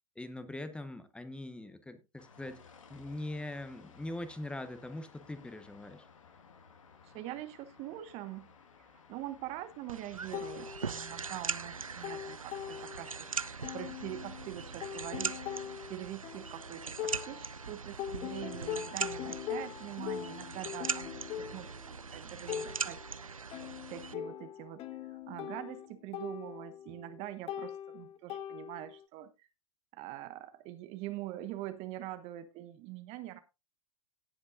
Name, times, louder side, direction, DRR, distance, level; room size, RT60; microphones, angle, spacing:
voice 1, 0.1-2.6 2.9-6.1, left 1 dB, 5° left, 1.2 m, -42 dB
sound 1, 2.2-16.0, left 6 dB, 70° left, 1.8 m, -58 dB
voice 2, 7.0-8.5 9.1-15.4 15.9-23.4 23.9-29.5 29.9-33.4, right 14 dB, 40° right, 1.0 m, -44 dB
sound 2, 9.9-24.1, right 5 dB, 90° right, 0.5 m, -41 dB
sound 3, 10.3-11.4 11.7-13.3 13.6-17.6 18.0-29.0, left 10 dB, 35° left, 1.0 m, -42 dB
17.0 x 8.0 x 2.6 m
figure-of-eight pair, 95°, 17 cm